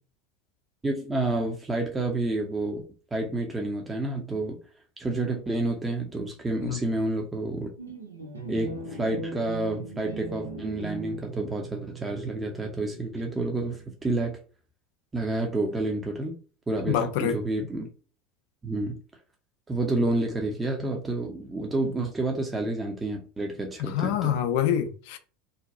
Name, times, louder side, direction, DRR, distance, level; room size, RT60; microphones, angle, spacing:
voice 1, 0.8-2.8 3.1-4.6 5.0-7.7 8.5-14.4 15.1-16.4 16.7-17.9 18.6-19.0 19.7-24.4, right 2 dB, 15° right, 0.6 m, -29 dB
sound 1, 7.8-14.1, right 3 dB, 90° right, 0.7 m, -40 dB
voice 2, 16.9-17.4 23.8-25.2, left 10 dB, 60° left, 0.4 m, -26 dB
2.7 x 2.2 x 3.8 m
figure-of-eight pair, 75°, 0 cm